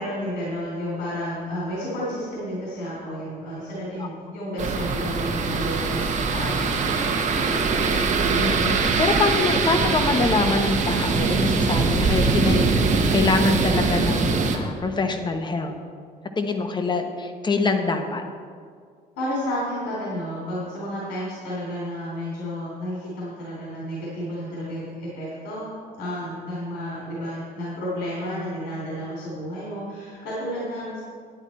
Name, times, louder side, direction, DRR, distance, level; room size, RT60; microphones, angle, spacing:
voice 1, 0.0-7.6 19.2-31.0, equal, 85° left, -6 dB, 3.2 m, -31 dB
sound 1, 4.6-14.6, right 4 dB, 45° right, 1.2 m, -22 dB
voice 2, 8.4-15.7 16.4-18.2, left 3 dB, 25° left, 6 dB, 1.1 m, -24 dB
11.0 x 9.8 x 4.3 m, 2.1 s
cardioid pair, 110°, 17 cm